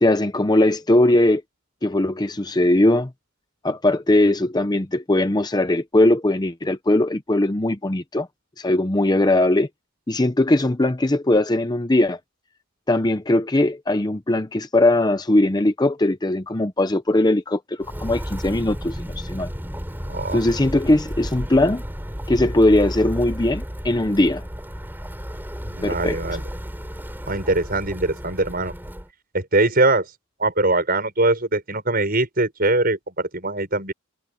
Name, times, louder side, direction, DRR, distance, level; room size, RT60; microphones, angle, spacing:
voice 1, 0.0-1.4 1.8-3.1 3.6-8.3 8.6-9.7 10.1-12.2 12.9-19.5 20.3-21.8 22.3-24.4 25.8-26.2, left 1 dB, 20° left, 0.6 m, -20 dB
Walk footsteps, 17.8-29.1, equal, 10° right, 7.2 m, -33 dB
voice 2, 20.1-20.4 25.6-26.4 27.3-28.7 29.3-30.1 30.4-33.9, right 2 dB, 45° right, 6.9 m, -22 dB
head